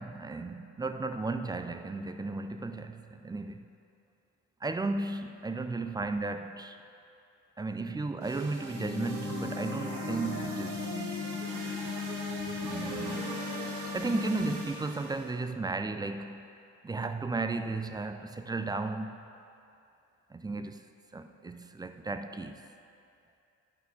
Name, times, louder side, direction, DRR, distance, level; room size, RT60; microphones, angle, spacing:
voice 1, 0.0-3.6 4.6-6.8 7.6-10.9 12.6-13.4 13.9-16.5 16.8-19.2 20.3-20.8 21.1-22.6, right 3 dB, 15° right, 8 dB, 0.3 m, -34 dB
sound 1, 8.2-15.3, right 2 dB, 80° right, 1.5 m, -40 dB
sound 2, 8.7-14.7, left 7 dB, 10° left, 1.2 m, -38 dB
11.5 x 4.2 x 4.1 m, 2.7 s
cardioid pair, 90°, 30 cm